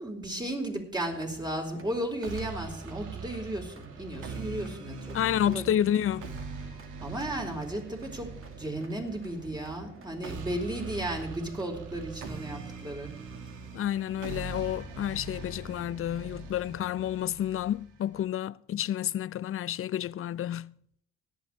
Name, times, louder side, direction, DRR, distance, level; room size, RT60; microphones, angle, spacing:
voice 1, 0.0-5.7 7.0-13.1, right 1 dB, 15° right, 4.5 m, -35 dB
sound 1, 1.1-17.2, right 4 dB, 45° right, 2.4 m, -50 dB
sound 2, 2.2-18.2, right 4 dB, 90° right, 2.3 m, -42 dB
voice 2, 5.1-6.3 13.7-20.7, left 11 dB, 45° left, 0.5 m, -30 dB
17.5 x 12.0 x 3.4 m
cardioid pair, 90°, 30 cm